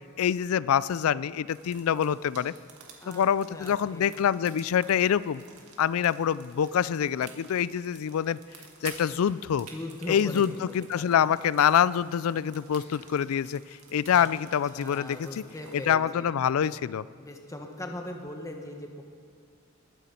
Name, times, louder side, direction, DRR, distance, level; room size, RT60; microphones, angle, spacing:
voice 1, 0.2-2.5 3.1-5.4 5.8-8.4 8.8-9.7 10.1-13.6 13.9-15.4 15.7-17.0, left 8 dB, 70° left, 19 dB, 0.3 m, -25 dB
sound 1, 1.5-15.9, right 6 dB, 85° right, 1.9 m, -51 dB
voice 2, 3.5-4.1 9.7-10.6 11.0-11.1 14.1-14.3 14.7-16.3 17.2-19.0, left 1 dB, 15° left, 3 dB, 1.0 m, -39 dB
20.5 x 9.3 x 4.3 m, 2.4 s
head